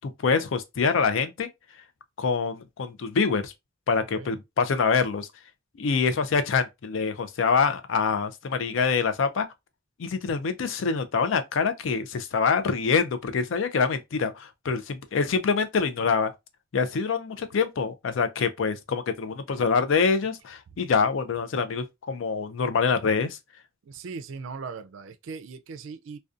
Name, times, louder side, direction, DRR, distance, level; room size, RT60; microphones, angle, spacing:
voice 1, 0.0-1.5 2.2-3.5 3.9-5.3 5.8-9.5 10.0-16.3 16.7-23.4, left 5 dB, 70° left, 0.4 m, -25 dB
voice 2, 23.8-26.2, right 5 dB, 70° right, 0.4 m, -39 dB
2.4 x 2.2 x 2.5 m
head